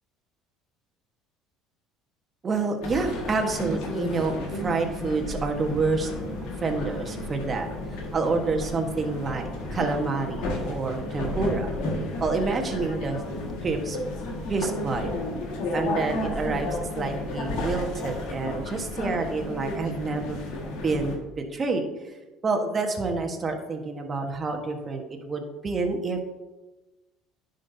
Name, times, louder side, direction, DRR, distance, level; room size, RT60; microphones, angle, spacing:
voice 1, 2.4-6.1 6.6-7.7 8.1-11.7 12.2-13.2 13.6-14.0 14.5-15.1 15.7-20.4 20.8-21.1 21.5-21.8 22.4-26.2, right 3 dB, 35° right, 3 dB, 1.4 m, -28 dB
sound 1, 2.8-21.2, left 2 dB, 75° left, 1.8 m, -32 dB
10.5 x 5.4 x 2.8 m, 1.1 s
supercardioid pair, 80°, 0 cm